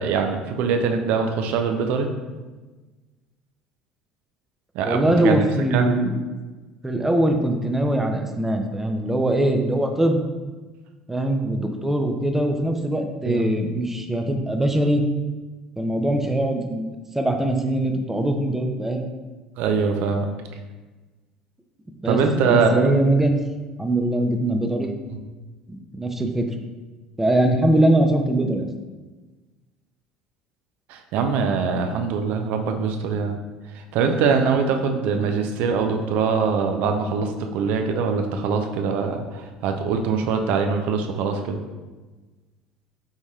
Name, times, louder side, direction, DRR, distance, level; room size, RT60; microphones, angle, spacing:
voice 1, 0.0-2.1 4.7-5.4 5.7-5.9 13.2-13.5 19.6-20.3 22.1-22.9 24.8-25.2 30.9-33.4 33.7-41.6, right 5 dB, 65° right, 5 dB, 0.5 m, -23 dB
voice 2, 4.8-6.2 6.8-10.2 11.1-15.0 15.8-16.9 17.1-19.0 22.0-23.3 23.8-24.9 25.7-26.5 27.2-28.7, right 1 dB, 10° right, 4 dB, 0.6 m, -22 dB
4.9 x 4.0 x 2.4 m, 1.2 s
hypercardioid pair, 70°, 3 cm